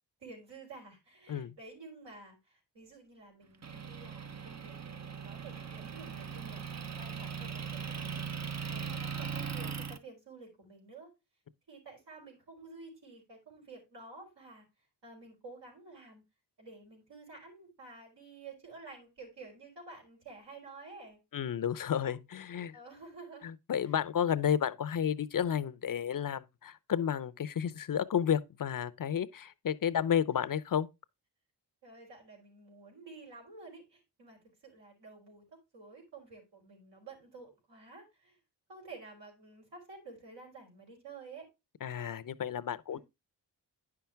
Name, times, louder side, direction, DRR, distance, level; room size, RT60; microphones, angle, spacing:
voice 1, 0.2-8.2 8.7-11.1 11.7-14.6 15.0-16.2 16.6-21.2 21.9-22.1 22.7-23.5 23.8-24.0 31.8-38.4 38.7-41.5 42.9-43.0, right 3 dB, 75° right, 4.4 m, -51 dB
Motor vehicle (road) / Engine, 3.6-10.0, right 6 dB, 40° right, 0.8 m, -39 dB
voice 2, 21.3-22.8 23.4-30.9 41.8-43.0, left 8 dB, 50° left, 0.7 m, -32 dB
9.8 x 5.9 x 3.4 m
cardioid pair, 75°, 42 cm